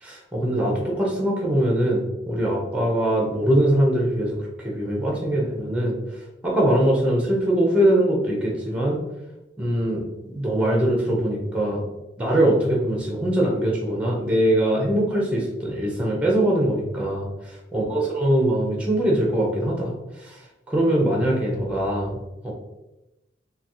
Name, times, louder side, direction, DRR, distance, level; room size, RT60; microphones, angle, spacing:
voice 1, 0.0-6.0 6.4-9.0 9.6-11.8 12.2-19.9 20.2-20.4 20.7-22.2 22.4-22.5, right 1 dB, 5° right, -2 dB, 0.7 m, -22 dB
3.9 x 2.3 x 2.9 m, 0.98 s
head